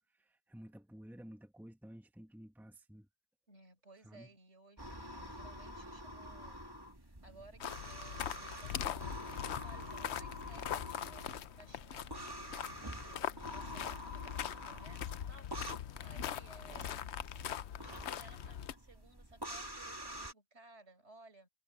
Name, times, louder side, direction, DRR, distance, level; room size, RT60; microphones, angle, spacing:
voice 1, 0.0-3.1 4.0-4.3, equal, ahead, 1.6 m, -53 dB
voice 2, 3.5-12.1 13.1-17.0 17.8-21.5, right 2 dB, 75° right, 6.5 m, -59 dB
sound 1, 4.8-20.3, equal, 20° right, 2.3 m, -48 dB
sound 2, 7.6-18.7, left 10 dB, 75° left, 0.9 m, -42 dB
omnidirectional pair, 1.2 m